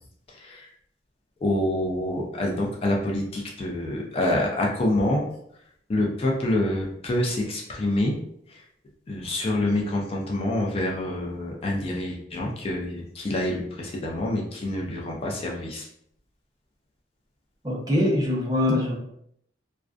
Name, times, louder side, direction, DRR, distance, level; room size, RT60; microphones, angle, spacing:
voice 1, 0.3-0.7 1.4-5.2 5.9-8.2 8.5-8.6 9.1-15.9, left 1 dB, 35° left, -1 dB, 0.4 m, -27 dB
voice 2, 17.6-18.9, left 1 dB, 20° right, -3 dB, 0.6 m, -23 dB
2.4 x 2.2 x 2.3 m, 0.72 s
head